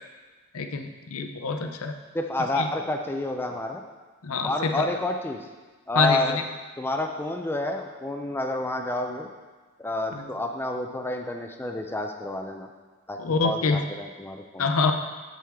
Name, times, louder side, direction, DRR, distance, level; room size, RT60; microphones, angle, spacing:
voice 1, 0.5-1.9 2.6-2.7 4.2-4.8 6.0-6.4 10.1-10.2 13.2-13.8 14.6-14.9, left 4 dB, 75° left, 6 dB, 0.6 m, -25 dB
voice 2, 2.1-3.8 4.4-5.5 5.9-6.4 6.8-9.3 9.8-12.7 13.1-14.7, left 1 dB, 10° left, 3 dB, 0.4 m, -29 dB
7.5 x 7.3 x 3.6 m, 1.3 s
head